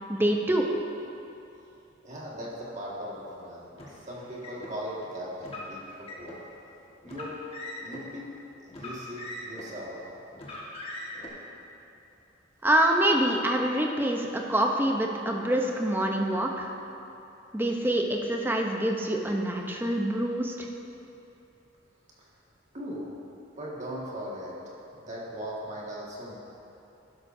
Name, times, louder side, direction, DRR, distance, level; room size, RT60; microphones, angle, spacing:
voice 1, 0.1-0.7 12.6-16.7 17.5-20.7, right 1 dB, 10° right, 1 dB, 0.7 m, -26 dB
voice 2, 2.0-6.4 7.0-7.4 7.8-8.3 8.6-10.1 22.2-22.3 22.7-23.1 23.6-24.6 24.9-26.4, equal, 35° right, -5 dB, 1.8 m, -39 dB
Car, 3.7-4.7 5.4-6.4 7.0-8.0 8.7-9.8 10.3-11.3, left 1 dB, 30° left, 1.5 m, -41 dB
12.0 x 11.5 x 2.7 m, 2.8 s
head